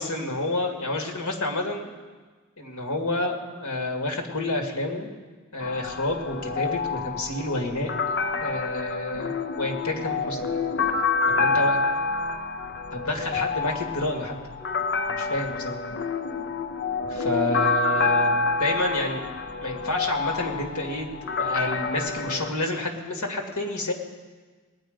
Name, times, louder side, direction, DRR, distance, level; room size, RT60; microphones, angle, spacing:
voice 1, 0.0-1.9 2.6-5.1 5.5-7.9 8.4-10.6 11.4-11.8 12.9-14.3 15.1-15.8 17.1-19.3 19.6-23.9, left 1 dB, 90° left, 1 dB, 2.1 m, -29 dB
sound 1, 5.6-22.5, left 4 dB, 50° left, 0.6 m, -28 dB
19.5 x 9.0 x 5.1 m, 1.4 s
head